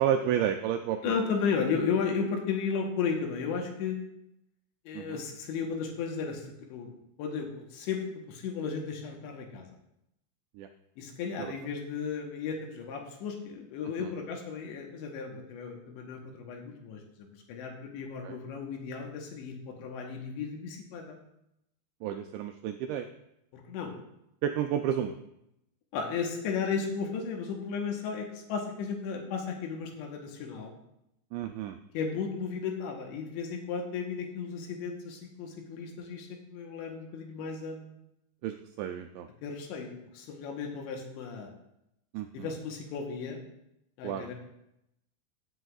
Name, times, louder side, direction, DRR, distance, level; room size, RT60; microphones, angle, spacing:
voice 1, 0.0-1.2 4.9-5.2 10.6-10.7 11.4-11.6 14.0-14.1 18.2-18.4 22.0-23.1 24.4-25.1 31.3-31.8 38.4-39.3 42.1-42.5 44.0-44.3, right 10 dB, 85° right, 6 dB, 2.5 m, -31 dB
voice 2, 1.0-4.0 4.9-9.7 11.0-21.2 23.5-23.9 25.9-30.7 31.9-38.0 39.4-41.5 42.3-43.4 44.0-44.3, left 5 dB, 75° left, 2 dB, 3.1 m, -34 dB
16.0 x 7.9 x 2.4 m, 0.82 s
omnidirectional pair, 5.6 m